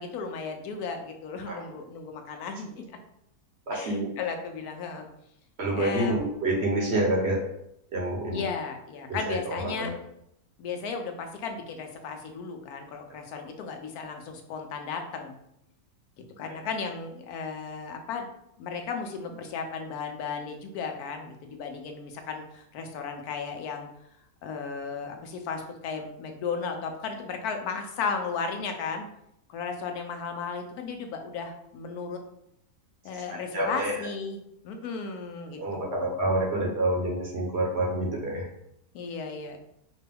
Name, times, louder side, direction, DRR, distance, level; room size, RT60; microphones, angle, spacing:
voice 1, 0.0-2.7 3.7-5.1 5.8-6.2 8.3-9.9 10.6-15.3 16.4-18.3 18.6-23.9 24.4-29.1 29.5-32.2 33.0-34.4 34.6-36.2 38.9-39.6, left 5 dB, 80° left, 5 dB, 1.1 m, -35 dB
voice 2, 3.7-4.1 5.6-7.4 7.9-8.5 9.1-9.9 16.4-16.5 33.3-34.1 35.6-38.5, right 1 dB, 50° right, -2 dB, 1.0 m, -28 dB
5.1 x 2.2 x 3.4 m, 0.78 s
omnidirectional pair, 1.6 m